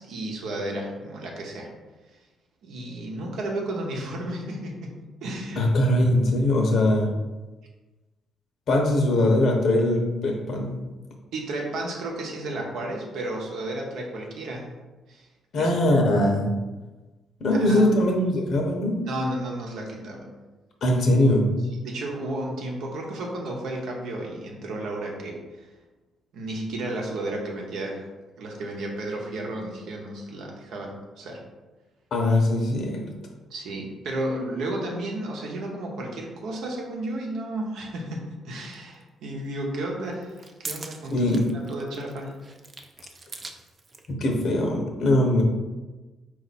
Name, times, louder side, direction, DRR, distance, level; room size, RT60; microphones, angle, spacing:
voice 1, 0.0-1.7 2.1-2.2 2.6-4.9 5.2-5.6 11.3-14.7 15.1-15.3 15.6-15.7 17.5-18.0 19.0-20.3 21.7-25.7 26.3-28.1 28.4-31.4 33.5-40.4 40.6-42.4, right 1 dB, 80° right, 0 dB, 0.9 m, -33 dB
voice 2, 5.6-7.1 8.7-10.7 15.5-16.5 17.4-19.1 20.8-21.5 32.1-33.1 41.1-41.4 44.1-45.4, left 1 dB, 65° left, 2 dB, 0.8 m, -21 dB
sound 1, 38.7-38.8 40.1-44.1, right 3 dB, 35° right, 0.5 m, -41 dB
4.3 x 2.6 x 4.1 m, 1.2 s
cardioid pair, 90°, 0 cm